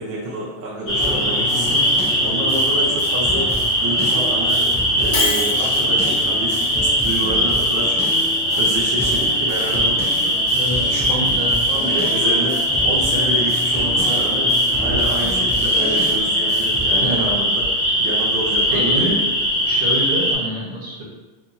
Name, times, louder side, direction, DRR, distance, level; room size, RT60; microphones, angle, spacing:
voice 1, 0.0-8.0 8.6-10.5 10.9-11.2 11.7-12.6 12.8-14.5 14.8-17.6 18.0-19.3, right 2 dB, 35° right, -6 dB, 0.5 m, -28 dB
sound 1, 0.9-20.4, equal, 30° left, 1.2 m, -20 dB
sound 2, 1.0-17.0, equal, 15° left, 0.4 m, -31 dB
Shatter, 5.1-5.7, left 4 dB, 60° left, 0.8 m, -24 dB
voice 2, 10.5-11.5 17.0-17.3 18.7-19.1 19.7-21.0, right 1 dB, 65° right, -3 dB, 1.1 m, -26 dB
2.6 x 2.6 x 2.5 m, 1.2 s
cardioid pair, 150°, 42 cm